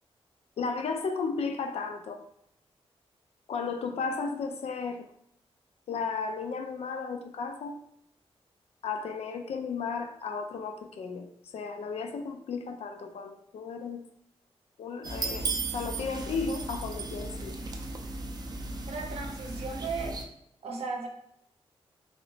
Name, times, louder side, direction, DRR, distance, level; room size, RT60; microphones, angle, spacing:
voice 1, 0.6-2.2 3.5-5.1 5.9-7.8 8.8-11.3 11.5-14.0 14.8-17.6, left 5 dB, 75° left, 6 dB, 0.4 m, -34 dB
sound 1, 15.0-20.2, right 3 dB, 40° right, 0.4 m, -35 dB
voice 2, 18.9-20.2 20.6-21.1, right 4 dB, 75° right, 2 dB, 0.7 m, -36 dB
3.1 x 2.9 x 2.7 m, 0.76 s
wide cardioid pair, 130°, 11 cm